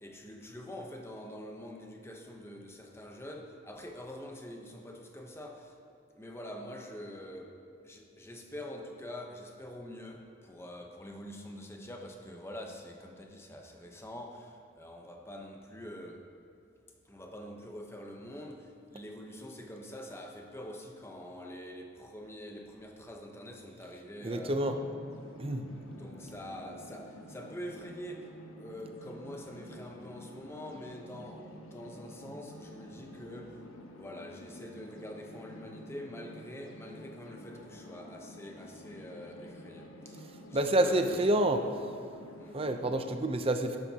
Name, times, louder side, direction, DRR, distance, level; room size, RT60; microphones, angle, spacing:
voice 1, 0.0-5.8 6.1-16.2 17.0-24.6 25.9-33.6 33.9-41.4 42.4-42.6, equal, 10° left, 2 dB, 0.8 m, -45 dB
voice 2, 24.2-24.8 25.4-25.6 40.5-41.6 42.5-43.8, right 1 dB, 30° right, 6 dB, 0.6 m, -28 dB
sound 1, 24.3-43.1, left 1 dB, 90° left, 1.1 m, -50 dB
12.5 x 10.5 x 2.9 m, 2.6 s
head